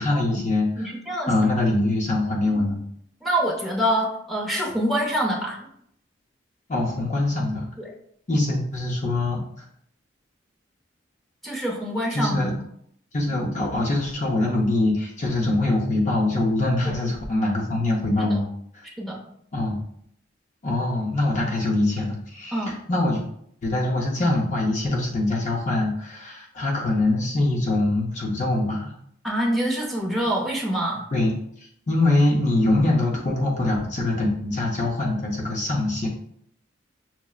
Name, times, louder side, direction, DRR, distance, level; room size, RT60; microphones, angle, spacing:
voice 1, 0.0-0.9 1.3-2.8 6.7-7.7 8.3-9.4 12.1-12.5 13.1-18.5 19.5-19.8 20.6-23.2 23.6-28.9 31.1-31.3 31.9-36.1, left 2 dB, 40° left, -2 dB, 0.6 m, -23 dB
voice 2, 0.8-1.3 3.2-5.6 7.8-7.9 11.4-12.5 16.9-17.0 18.8-19.2 22.5-22.7 29.2-31.1, right 1 dB, ahead, -2 dB, 0.6 m, -25 dB
5.7 x 2.0 x 2.3 m, 0.68 s
head